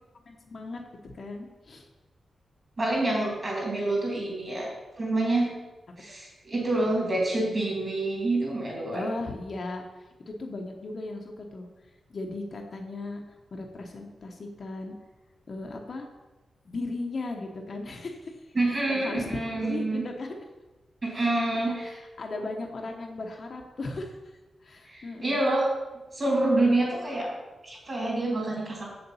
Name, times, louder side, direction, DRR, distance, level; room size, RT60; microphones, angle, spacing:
voice 1, 0.3-1.9 6.1-6.2 8.9-11.7 12.1-13.2 13.5-14.9 15.5-16.1 16.6-20.4 21.1-21.3 21.5-24.2 24.6-25.4, left 2 dB, 40° left, 2 dB, 1.0 m, -37 dB
voice 2, 2.8-4.7 5.0-5.6 6.0-9.1 18.5-20.0 21.0-21.9 24.9-25.7 26.1-27.3 27.6-28.9, right 2 dB, 30° right, -2 dB, 3.2 m, -27 dB
7.9 x 7.0 x 5.6 m, 1.1 s
wide cardioid pair, 165°, 0 cm